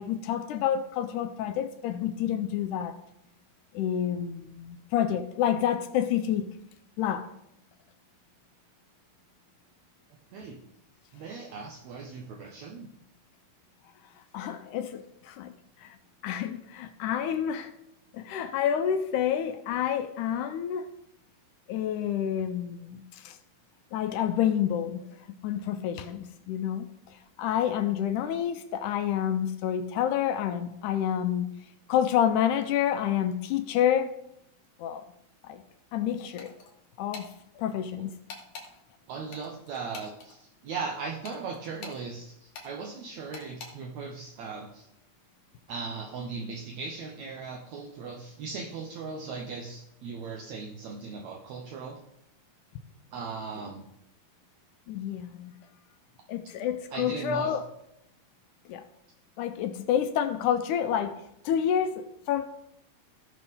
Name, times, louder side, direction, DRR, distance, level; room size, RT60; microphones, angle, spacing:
voice 1, 0.0-2.9 3.7-6.5 7.0-7.3 14.3-15.5 15.8-16.0 16.2-17.7 18.1-20.9 21.7-23.4 23.9-25.0 25.4-31.5 31.9-34.2 34.8-35.0 35.4-35.6 35.9-36.5 37.0-38.1 54.9-55.5 56.3-57.7 58.7-58.9 59.4-62.4, left 9 dB, 80° left, 9 dB, 2.1 m, -28 dB
voice 2, 11.1-12.9 39.1-44.9 45.7-52.0 53.1-53.8 56.9-57.6, right 4 dB, 70° right, 1 dB, 2.0 m, -38 dB
sound 1, 36.4-36.7 37.1-37.3 38.3-38.7 39.3-40.3 41.2-42.0 42.5-42.7 43.3-43.7, left 4 dB, 65° left, 2.9 m, -43 dB
16.5 x 6.2 x 3.6 m, 0.78 s
omnidirectional pair, 3.7 m